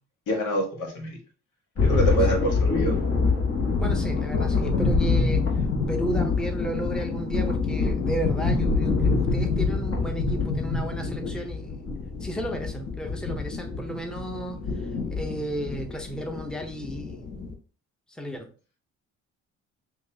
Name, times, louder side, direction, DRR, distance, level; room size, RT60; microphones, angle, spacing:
voice 1, 0.3-1.2 1.8-3.0, right 1 dB, 85° left, 1 dB, 1.6 m, -26 dB
sound 1, 1.8-17.5, left 4 dB, 50° left, 1.5 m, -26 dB
voice 2, 3.8-5.5 5.9-11.8 12.2-14.6 15.1-17.2 18.2-18.5, right 1 dB, 5° left, 4 dB, 0.8 m, -33 dB
6.4 x 2.5 x 2.8 m, 0.37 s
cardioid pair, 90°, 30 cm